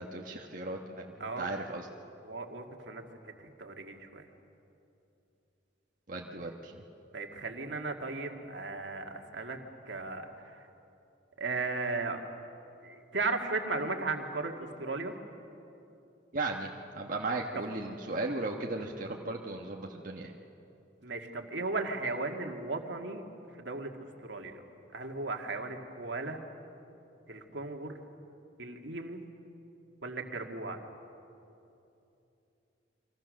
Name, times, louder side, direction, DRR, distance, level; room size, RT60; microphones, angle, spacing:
voice 1, 0.0-1.9 6.1-6.8 16.3-16.7 16.9-20.3, right 2 dB, 45° right, -1 dB, 1.3 m, -36 dB
voice 2, 1.2-1.5 2.2-4.3 7.1-9.6 9.9-10.7 11.4-12.2 12.8-15.1 17.6-17.7 21.0-23.2 23.5-23.9 24.2-24.6 24.9-26.4 27.3-28.0 28.6-29.2 30.0-30.8, right 3 dB, 70° right, 3 dB, 2.1 m, -36 dB
30.0 x 24.5 x 6.5 m, 2.8 s
head